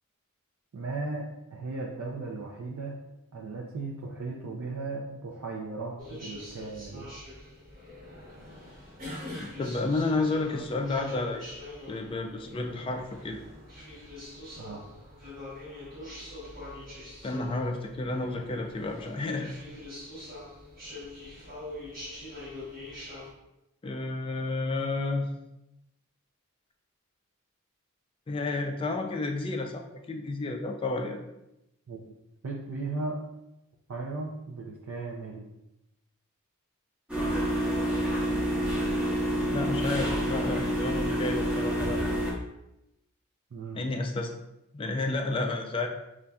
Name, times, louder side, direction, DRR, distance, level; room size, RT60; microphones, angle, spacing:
voice 1, 0.7-1.3 1.5-2.9 3.3-7.1 14.6-14.8 31.9-32.0 32.4-33.2 33.9-35.4 43.5-43.8, right 3 dB, 70° right, -3 dB, 0.5 m, -36 dB
sound 1, 6.0-23.3, left 1 dB, 40° right, 1.2 m, -44 dB
voice 2, 9.4-11.5 11.9-13.4 17.2-19.5 23.8-25.3 28.3-31.2 39.5-42.0 43.8-44.3 44.7-45.9, left 2 dB, 25° left, 3 dB, 0.3 m, -31 dB
sound 2, 37.1-42.3, equal, 5° right, 0.8 m, -28 dB
5.4 x 2.5 x 2.2 m, 0.89 s
head